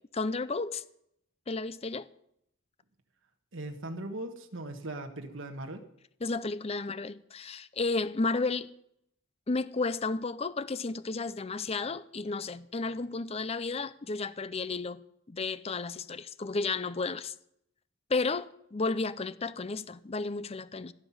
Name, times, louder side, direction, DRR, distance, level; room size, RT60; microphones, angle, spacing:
voice 1, 0.1-0.8 1.5-2.1 6.2-8.7 9.5-15.0 15.3-17.3 18.1-20.9, left 3 dB, 30° left, 0.6 m, -32 dB
voice 2, 3.5-5.8, right 1 dB, 70° right, 1.5 m, -39 dB
16.5 x 6.0 x 9.7 m
head